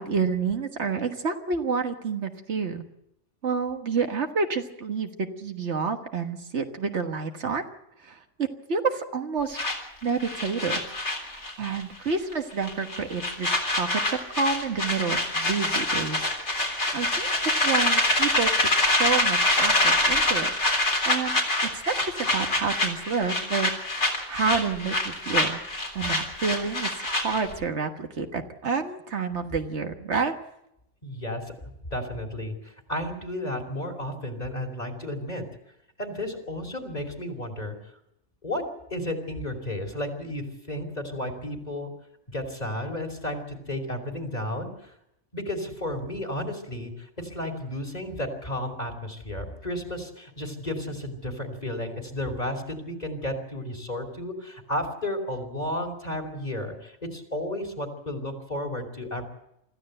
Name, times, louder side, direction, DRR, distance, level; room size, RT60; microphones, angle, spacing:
voice 1, 0.0-2.8 3.4-7.6 8.0-9.6 10.0-10.8 11.3-16.2 16.7-20.5 21.1-21.4 21.7-30.3, right 5 dB, 70° right, 6 dB, 1.7 m, -29 dB
sound 1, 9.6-11.8 12.1-12.3 12.6-27.5, left 2 dB, 75° left, 4.0 m, -25 dB
voice 2, 31.0-31.4 31.9-35.5 36.0-37.7 38.4-38.6 38.9-41.9 42.3-44.9 45.3-59.2, left 1 dB, 35° left, 3 dB, 3.0 m, -33 dB
24.5 x 14.5 x 7.8 m, 0.81 s
omnidirectional pair, 1.2 m